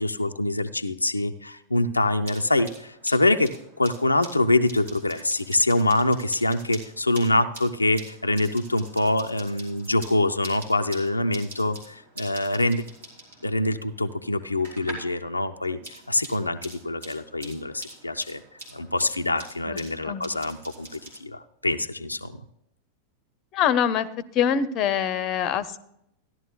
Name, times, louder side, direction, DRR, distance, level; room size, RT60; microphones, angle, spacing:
voice 1, 0.0-12.8 13.4-18.4 18.7-22.4, left 2 dB, 85° left, 6 dB, 0.5 m, -25 dB
sound 1, 2.0-15.2 15.5-21.2, right 1 dB, 70° right, 3.3 m, -45 dB
voice 2, 23.5-24.1 24.3-25.9, left 8 dB, 35° left, 16 dB, 0.6 m, -24 dB
15.0 x 11.0 x 2.3 m, 0.76 s
figure-of-eight pair, 90°, 0 cm